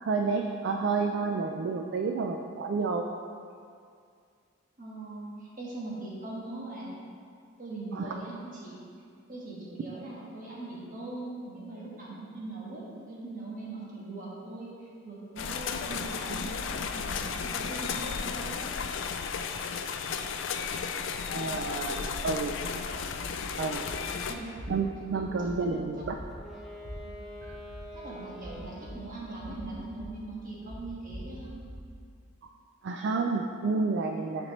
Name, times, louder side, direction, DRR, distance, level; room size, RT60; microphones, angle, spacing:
voice 1, 0.0-3.0 7.9-8.2 21.3-22.6 23.6-23.8 24.7-26.2 32.8-34.5, right 4 dB, 55° right, 3 dB, 0.3 m, -30 dB
voice 2, 4.8-6.9 7.6-8.9 9.3-18.6 24.3-24.5 25.1-25.5 26.0-26.1 27.0-27.1 27.9-31.5, right 2 dB, 40° right, -6 dB, 1.4 m, -41 dB
sound 1, 15.4-24.3, left 6 dB, 65° left, 0.4 m, -34 dB
sound 2, 22.9-23.3 23.9-24.1 24.6-24.7 25.1-25.5 26.0-26.4 26.8-26.9 27.4-27.8 28.4-28.9 29.4-30.1 30.7-31.8, equal, 75° right, 1.4 m, -43 dB
Wind instrument woodwind instrument, 26.3-29.2, equal, ahead, 0.5 m, -46 dB
9.3 x 4.3 x 3.1 m, 2.3 s
head